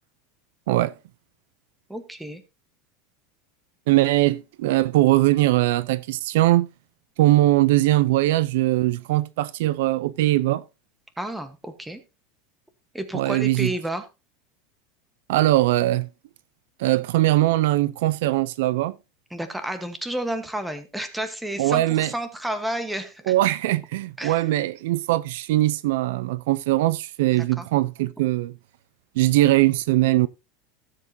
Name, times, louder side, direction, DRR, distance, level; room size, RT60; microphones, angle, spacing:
voice 1, 1.9-2.4 11.2-12.0 12.9-14.1 19.3-23.3 24.2-24.5 27.3-27.7, right 1 dB, 5° right, 1.1 m, -31 dB
voice 2, 3.9-6.7 7.2-10.6 13.1-13.7 15.3-16.1 16.8-18.9 21.6-22.1 23.3-28.5 29.2-30.3, right 16 dB, 70° right, 0.5 m, -21 dB
16.5 x 7.5 x 2.7 m
supercardioid pair, 165°, 0 cm